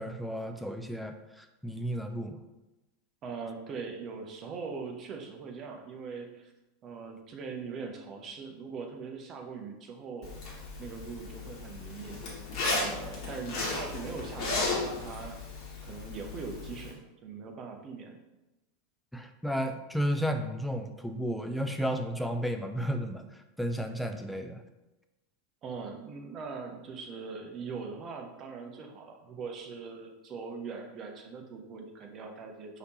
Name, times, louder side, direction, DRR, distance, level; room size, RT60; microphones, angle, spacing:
voice 1, 0.0-2.4 19.1-24.6, equal, ahead, 6 dB, 0.4 m, -33 dB
voice 2, 3.2-6.5 6.8-10.3 10.8-12.2 12.7-15.4 15.8-18.2 25.6-32.8, right 5 dB, 35° right, 3 dB, 0.7 m, -41 dB
Zipper (clothing), 10.2-16.9, left 3 dB, 45° left, 1.2 m, -35 dB
5.0 x 2.9 x 2.9 m, 1.0 s
figure-of-eight pair, 85°, 0 cm